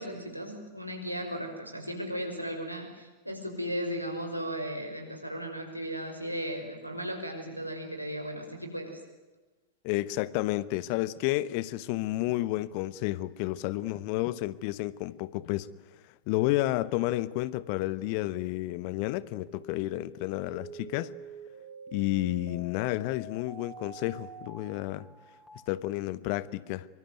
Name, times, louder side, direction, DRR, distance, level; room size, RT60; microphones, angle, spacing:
voice 1, 0.0-9.0, equal, 90° right, 3 dB, 5.9 m, -36 dB
voice 2, 9.8-15.7 16.3-21.1 21.9-25.1 25.7-26.9, left 17 dB, 45° left, 18 dB, 1.1 m, -31 dB
sound 1, 19.5-25.5, right 2 dB, 5° left, 5.1 m, -46 dB
25.5 x 24.0 x 9.5 m, 1.2 s
figure-of-eight pair, 90°, 0 cm